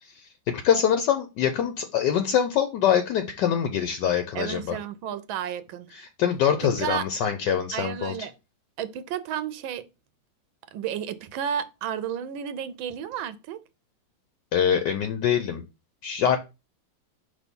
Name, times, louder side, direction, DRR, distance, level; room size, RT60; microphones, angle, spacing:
voice 1, 0.0-4.8 5.9-8.2 14.5-15.6 16.0-16.4, left 8 dB, 70° left, 1.3 m, -24 dB
voice 2, 4.3-5.9 6.6-7.1 7.7-8.3 8.8-9.9 10.7-13.6, right 9 dB, 90° right, 1.4 m, -32 dB
5.2 x 3.4 x 5.3 m
omnidirectional pair, 2.1 m